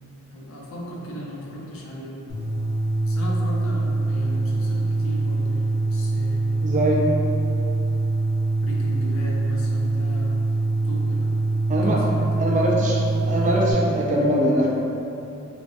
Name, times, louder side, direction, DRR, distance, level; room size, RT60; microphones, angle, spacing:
voice 1, 0.3-2.4 3.1-6.5 8.6-10.4 10.8-11.3 11.8-12.5, equal, 80° left, -3 dB, 0.5 m, -36 dB
sound 1, 2.3-13.7, right 2 dB, 55° left, 0.9 m, -24 dB
voice 2, 6.6-7.1 11.7-12.1 12.4-14.7, right 1 dB, 35° right, -3 dB, 0.4 m, -22 dB
3.0 x 2.5 x 2.5 m, 2.8 s
head